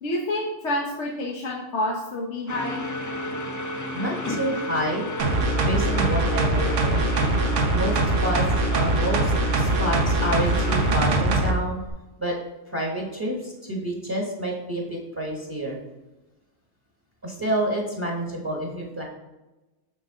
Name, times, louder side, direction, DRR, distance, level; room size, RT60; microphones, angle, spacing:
voice 1, 0.0-2.8, left 1 dB, 75° left, -1 dB, 1.2 m, -28 dB
sound 1, 2.5-10.9, left 2 dB, 25° left, 0.5 m, -33 dB
voice 2, 3.9-5.1 5.6-7.0 7.7-8.4 8.7-11.8 12.2-12.4 12.7-15.8 17.2-19.0, right 1 dB, 20° right, -1 dB, 1.1 m, -28 dB
sound 2, 5.2-11.5 11.9-12.0, right 2 dB, 85° right, 1.3 m, -22 dB
6.6 x 6.2 x 3.7 m, 1.1 s
omnidirectional pair, 1.2 m